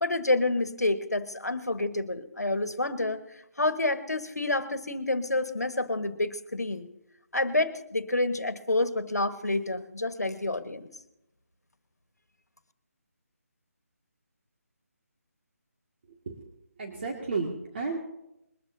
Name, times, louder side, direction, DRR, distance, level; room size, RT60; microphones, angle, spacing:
voice 1, 0.0-3.2 3.6-6.9 7.3-10.9, left 2 dB, 85° left, 11 dB, 1.4 m, -28 dB
voice 2, 16.8-18.0, right 4 dB, 45° right, 0 dB, 2.0 m, -32 dB
21.5 x 13.5 x 2.7 m, 0.88 s
figure-of-eight pair, 155°, 8 cm